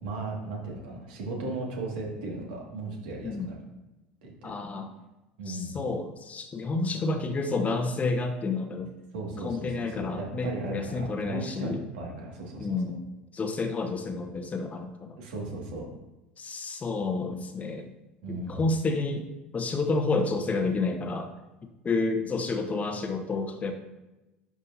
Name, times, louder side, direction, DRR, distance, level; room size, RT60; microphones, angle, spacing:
voice 1, 0.0-3.6 4.2-4.5 5.4-5.8 9.1-12.9 15.2-15.9 18.2-18.6, right 2 dB, 65° right, -1 dB, 2.1 m, -36 dB
voice 2, 3.2-3.5 4.4-4.9 5.5-8.9 9.4-11.8 12.6-13.1 13.3-15.2 16.4-17.9 18.3-19.2 19.5-21.3 21.8-23.7, left 3 dB, 25° left, 6 dB, 1.0 m, -30 dB
11.0 x 5.3 x 2.8 m, 1.0 s
figure-of-eight pair, 70°, 6 cm